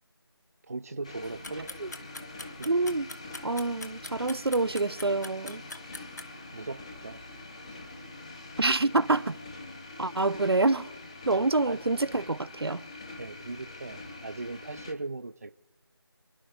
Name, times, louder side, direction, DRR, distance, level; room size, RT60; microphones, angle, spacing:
voice 1, 0.7-2.1 2.6-2.7 6.5-7.2 11.7-11.8 13.2-15.5, right 3 dB, 35° right, 0.5 m, -39 dB
sound 1, 1.0-14.9, left 2 dB, 15° left, 0.8 m, -45 dB
sound 2, 1.2-6.3, left 3 dB, 45° left, 0.9 m, -42 dB
voice 2, 2.7-3.1 3.4-5.6 8.6-9.4 10.0-10.9 11.3-12.8, right 2 dB, 75° right, 0.8 m, -26 dB
28.0 x 11.0 x 3.3 m
figure-of-eight pair, 165°, 13 cm